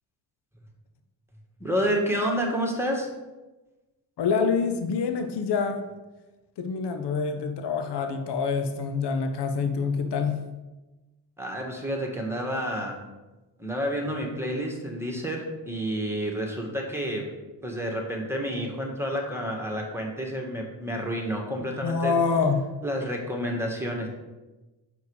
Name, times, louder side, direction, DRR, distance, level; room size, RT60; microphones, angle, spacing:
voice 1, 1.6-3.1 11.4-13.0 13.6-17.3 17.6-22.1 22.8-24.1, equal, 5° right, 0 dB, 1.7 m, -29 dB
voice 2, 4.2-5.8 6.6-10.4 21.8-22.6, left 5 dB, 60° left, 6 dB, 0.9 m, -26 dB
7.0 x 4.6 x 4.8 m, 1.1 s
supercardioid pair, 60°, 47 cm